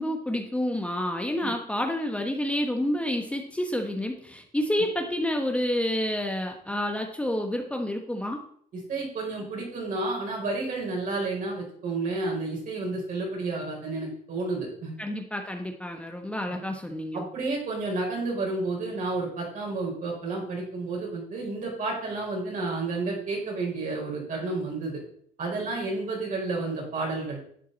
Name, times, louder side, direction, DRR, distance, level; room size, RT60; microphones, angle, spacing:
voice 1, 0.0-8.4 15.0-17.3, left 1 dB, 5° left, 3 dB, 1.1 m, -29 dB
voice 2, 8.7-15.0 16.5-16.6 17.1-25.0 25.4-27.5, right 3 dB, 50° right, -2 dB, 5.1 m, -31 dB
11.0 x 8.5 x 4.1 m, 0.62 s
cardioid pair, 110°, 17 cm